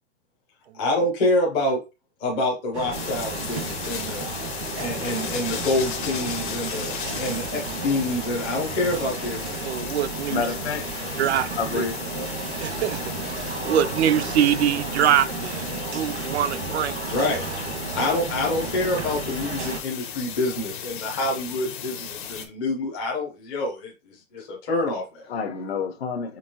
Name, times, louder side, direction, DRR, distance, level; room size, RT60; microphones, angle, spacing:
voice 1, 0.7-1.8 2.2-4.2 4.8-9.9 17.1-17.4 17.9-25.2, left 2 dB, 10° left, 0.5 m, -27 dB
sound 1, 2.7-19.8, right 4 dB, 85° right, 1.6 m, -33 dB
sound 2, 2.9-22.5, left 8 dB, 45° left, 0.9 m, -35 dB
voice 2, 9.6-10.5 11.2-11.9 12.6-16.9, right 9 dB, 70° right, 0.5 m, -24 dB
voice 3, 10.3-10.9 11.6-12.0 25.3-26.4, left 5 dB, 65° left, 1.1 m, -28 dB
5.2 x 3.2 x 2.8 m
hypercardioid pair, 175°, 34 cm